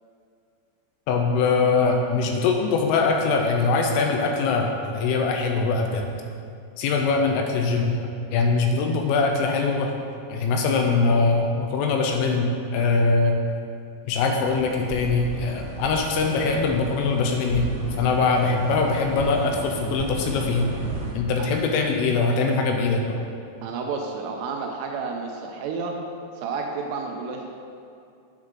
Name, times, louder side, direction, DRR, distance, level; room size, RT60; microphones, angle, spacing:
voice 1, 1.1-6.1 6.8-9.9 10.3-13.4 14.1-17.7 18.0-20.7 21.1-23.2, left 4 dB, 80° left, 2 dB, 3.0 m, -22 dB
sound 1, 14.2-21.1, right 2 dB, 65° right, 2.8 m, -34 dB
voice 2, 23.6-26.0 26.3-27.5, right 4 dB, 80° right, 2 dB, 2.9 m, -31 dB
8.9 x 7.2 x 3.7 m, 2.5 s
omnidirectional pair, 6.0 m